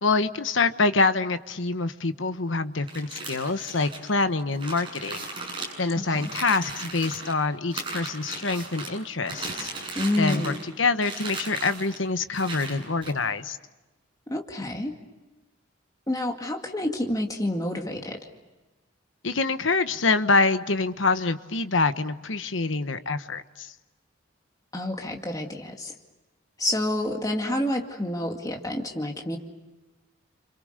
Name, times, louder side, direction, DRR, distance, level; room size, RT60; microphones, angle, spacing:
voice 1, 0.0-5.2 5.8-9.7 10.2-13.6 19.2-23.7, left 3 dB, 75° left, 10 dB, 1.2 m, -25 dB
sound 1, 2.8-7.3 7.7-8.9 9.3-10.7 11.0-12.0 12.3-13.1, right 3 dB, 25° right, 7.7 m, -36 dB
voice 2, 6.0-6.3 10.0-10.6 14.3-15.0 16.1-18.2 24.7-25.9 26.6-29.4, left 1 dB, 20° left, 2 dB, 2.2 m, -28 dB
29.5 x 26.5 x 6.7 m, 1.1 s
head